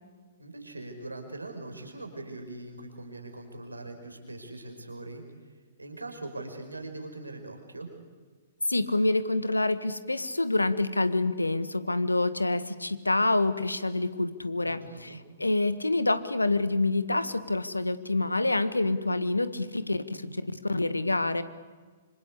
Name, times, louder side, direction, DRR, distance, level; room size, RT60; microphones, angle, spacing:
voice 1, 0.4-7.9 14.5-15.2, right 2 dB, 85° right, 5 dB, 5.3 m, -41 dB
voice 2, 8.7-21.4, left 2 dB, 85° left, 13 dB, 1.7 m, -27 dB
26.5 x 26.0 x 8.4 m, 1.4 s
figure-of-eight pair, 115°, 0 cm